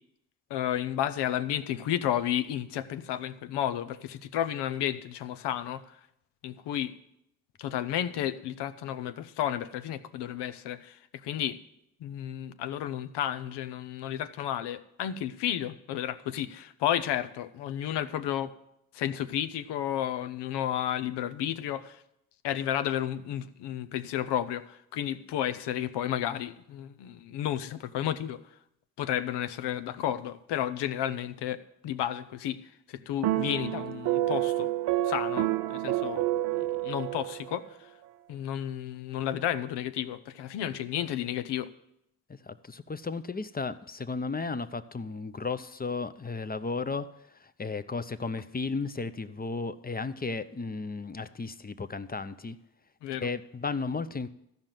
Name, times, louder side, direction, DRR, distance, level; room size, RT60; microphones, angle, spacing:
voice 1, 0.5-6.0 6.4-6.9 7.6-11.6 12.0-18.5 18.9-22.0 22.4-28.5 29.0-32.6 32.9-34.7 35.0-36.3 36.5-37.9 38.3-41.7 53.0-53.3, left 11 dB, 85° left, 12 dB, 0.7 m, -32 dB
sound 1, 33.2-37.7, right 15 dB, 85° right, 0.6 m, -29 dB
voice 2, 42.3-52.6 53.2-54.3, left 4 dB, 25° left, 12 dB, 0.7 m, -34 dB
13.5 x 5.3 x 7.5 m, 0.80 s
supercardioid pair, 50°, 40 cm